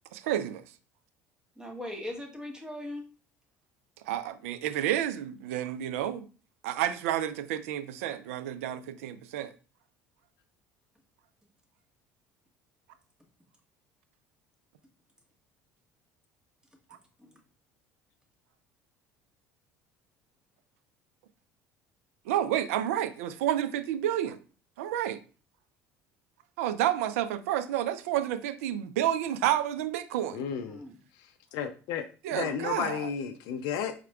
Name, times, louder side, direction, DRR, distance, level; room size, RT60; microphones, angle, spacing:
voice 1, 0.1-0.6 4.1-6.3 6.6-9.5 22.3-24.4 24.8-25.2 26.6-30.4 32.2-33.1, right 11 dB, 85° right, 0.4 m, -30 dB
voice 2, 1.6-3.1 17.2-17.4 30.6-31.0 32.3-32.5, left 1 dB, 10° right, 1.3 m, -40 dB
voice 3, 30.3-30.8 31.2-32.0 32.3-33.9, left 8 dB, 70° left, 0.4 m, -33 dB
4.5 x 3.5 x 2.3 m
hypercardioid pair, 70°, 8 cm